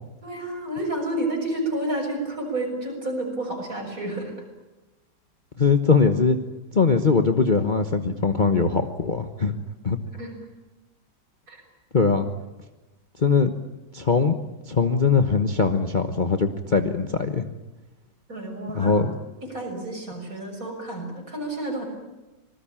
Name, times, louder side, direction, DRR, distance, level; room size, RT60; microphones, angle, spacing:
voice 1, 0.2-4.3 10.2-10.3 11.5-11.6 18.3-19.0 19.4-21.9, right 1 dB, 50° right, 2 dB, 6.9 m, -30 dB
voice 2, 5.6-6.4 6.7-9.6 9.8-10.0 11.9-12.3 13.2-13.5 13.9-14.4 14.7-17.5 18.7-19.1, left 4 dB, 30° left, 6 dB, 1.1 m, -21 dB
26.5 x 20.0 x 8.8 m, 1.1 s
omnidirectional pair, 1.9 m